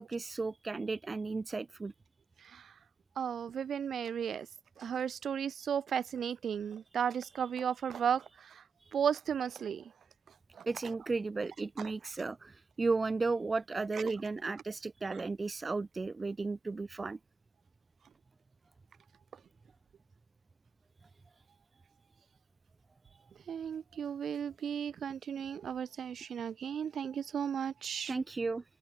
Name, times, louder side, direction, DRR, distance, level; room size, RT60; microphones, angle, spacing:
voice 1, 0.0-1.9 10.7-17.2 28.1-28.6, right 3 dB, 25° right, 0.5 m, -34 dB
voice 2, 3.2-4.5 4.8-8.6 8.9-9.8 10.6-10.7 23.5-28.1, right 8 dB, 55° right, 1.1 m, -34 dB
open air
cardioid pair, 90°, 0 cm